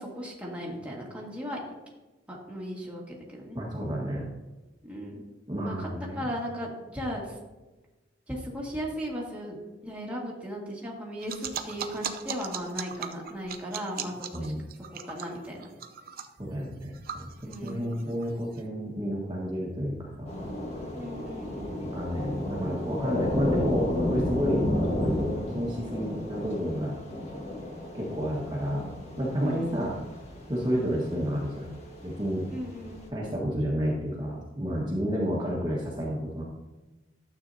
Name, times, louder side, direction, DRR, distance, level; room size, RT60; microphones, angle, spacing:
voice 1, 0.0-1.6 2.3-3.6 4.8-5.2 5.6-7.4 8.3-9.6 9.8-14.5 14.9-15.7 17.4-17.9 20.9-22.1 29.4-29.9 32.5-33.0, equal, 5° right, -4 dB, 1.9 m, -37 dB
voice 2, 3.5-4.2 5.5-6.2 14.3-14.6 16.4-17.3 17.6-20.3 21.7-24.7 25.0-26.9 27.9-28.8 29.2-30.0 30.5-31.7 32.0-32.5 33.1-36.4, equal, 25° right, -5 dB, 1.5 m, -30 dB
sound 1, 11.2-18.6, right 7 dB, 55° right, 0.7 m, -39 dB
Thunder / Rain, 20.3-33.1, left 1 dB, 40° left, 1.7 m, -33 dB
12.0 x 8.1 x 2.7 m, 1.1 s
head